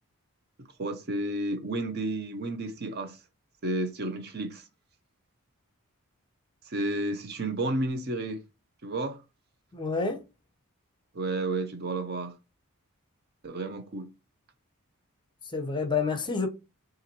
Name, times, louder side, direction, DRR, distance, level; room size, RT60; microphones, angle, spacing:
voice 1, 0.6-3.2 3.6-4.6 6.7-8.4 8.8-9.2 11.1-12.3 13.4-14.1, right 2 dB, 45° right, 0.7 m, -31 dB
voice 2, 9.7-10.2 15.5-16.5, left 4 dB, 20° left, 0.7 m, -28 dB
5.6 x 2.5 x 2.9 m
head